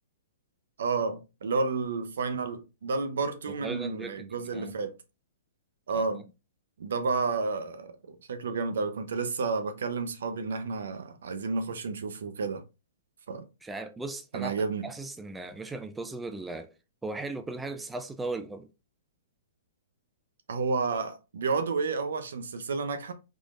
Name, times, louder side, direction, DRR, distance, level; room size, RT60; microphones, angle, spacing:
voice 1, 0.8-4.9 5.9-6.2 6.8-12.6 13.3-13.4 14.3-14.9 20.5-23.1, right 4 dB, 75° right, 0.7 m, -31 dB
voice 2, 3.5-4.8 5.9-6.2 13.6-14.5 14.8-16.7 17.0-18.7, right 2 dB, 5° right, 0.3 m, -37 dB
3.8 x 3.1 x 2.5 m
hypercardioid pair, 140°, 0 cm